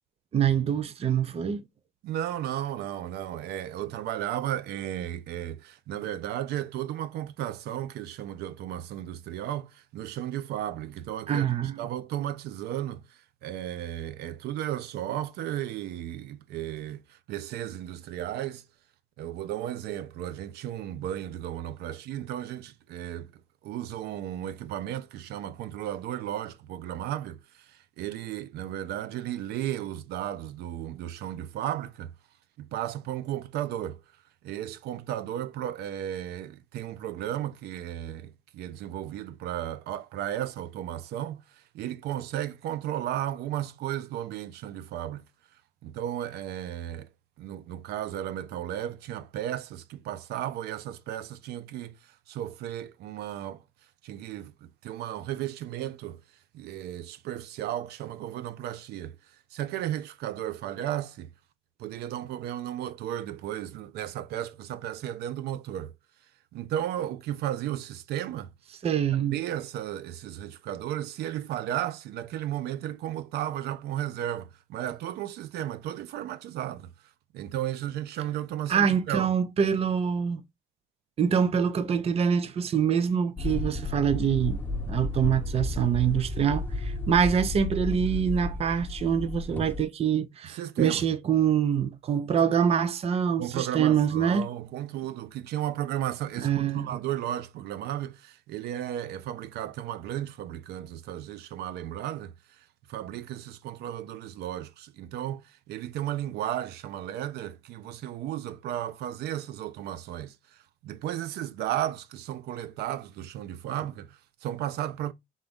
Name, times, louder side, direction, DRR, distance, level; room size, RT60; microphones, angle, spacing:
voice 1, 0.3-1.6 11.3-11.8 68.8-69.4 78.7-80.4 81.2-84.6 84.9-94.5 96.4-96.9, right 8 dB, 35° right, 0.6 m, -25 dB
voice 2, 2.0-11.5 11.8-18.6 19.2-32.1 32.6-34.0 34.4-45.2 45.8-47.1 47.4-53.6 54.0-56.2 56.5-61.3 61.8-65.9 66.5-68.5 69.3-76.9 77.3-79.3 90.4-91.0 93.4-115.1, right 12 dB, 75° right, 0.6 m, -34 dB
sound 1, 83.4-89.8, left 2 dB, 10° left, 0.9 m, -33 dB
4.0 x 3.5 x 3.4 m
cardioid pair, 110°, 17 cm